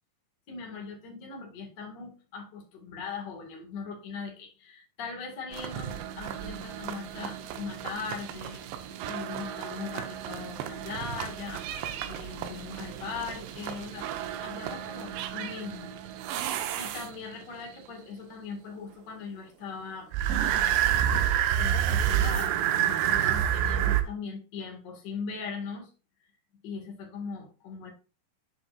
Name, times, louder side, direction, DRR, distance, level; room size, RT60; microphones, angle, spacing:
voice 1, 0.5-14.1 14.4-15.9 16.8-20.1 20.4-20.9 21.6-25.9 26.6-27.9, left 5 dB, 85° left, 1 dB, 0.9 m, -40 dB
sound 1, 5.5-17.4 20.1-24.0, right 10 dB, 80° right, 2.9 m, -30 dB
8.4 x 7.2 x 2.4 m, 0.33 s
omnidirectional pair, 5.3 m